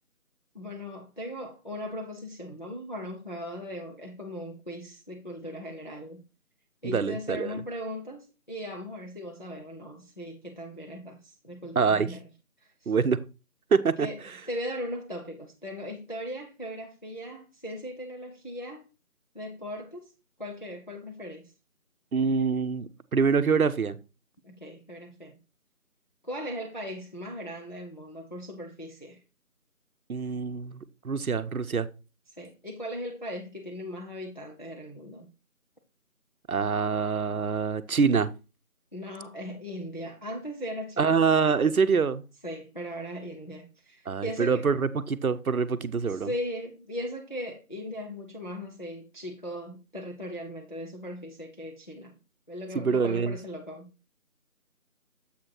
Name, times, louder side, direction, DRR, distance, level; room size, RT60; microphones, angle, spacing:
voice 1, 0.5-6.2 6.8-12.2 12.6-12.9 14.0-14.2 14.5-18.8 19.3-20.1 20.4-21.5 24.4-25.4 26.2-29.2 32.4-35.3 38.9-41.2 42.4-44.7 46.1-52.1 52.5-54.1, equal, 35° left, 0.7 m, -38 dB
voice 2, 6.8-7.5 11.8-12.1 12.9-13.2 13.7-14.1 22.1-24.0 30.1-31.9 36.5-38.3 41.0-42.2 44.1-46.3 52.7-53.4, right 5 dB, 75° right, 0.7 m, -25 dB
7.4 x 4.3 x 4.6 m
figure-of-eight pair, 175°, 43 cm